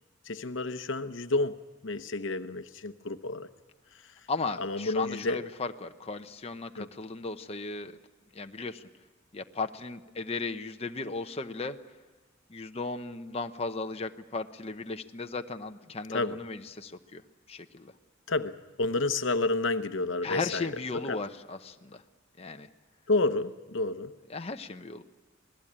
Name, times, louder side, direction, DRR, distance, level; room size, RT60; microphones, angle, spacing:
voice 1, 0.2-1.6 1.8-3.5 4.0-4.2 4.6-5.5 6.8-6.9 16.1-16.4 18.3-21.2 23.1-24.2, left 2 dB, 70° left, 11 dB, 0.9 m, -30 dB
voice 2, 4.3-8.0 8.3-8.9 9.3-11.8 12.5-17.2 17.5-17.9 20.2-22.0 22.4-22.7 24.3-25.0, left 3 dB, 30° left, 6 dB, 0.8 m, -36 dB
27.5 x 19.0 x 8.7 m, 1.3 s
head